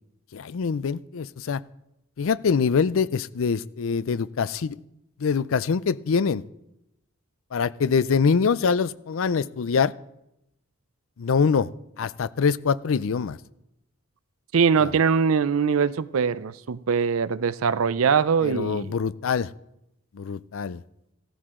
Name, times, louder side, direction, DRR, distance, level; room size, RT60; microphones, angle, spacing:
voice 1, 0.3-1.6 2.2-4.8 5.2-6.4 7.5-9.9 11.2-11.7 12.0-13.4 14.8-14.9 18.4-19.5 20.1-20.8, left 5 dB, 70° left, 0.4 m, -24 dB
voice 2, 14.5-18.9, right 6 dB, 80° right, 0.5 m, -22 dB
15.0 x 14.0 x 3.7 m
head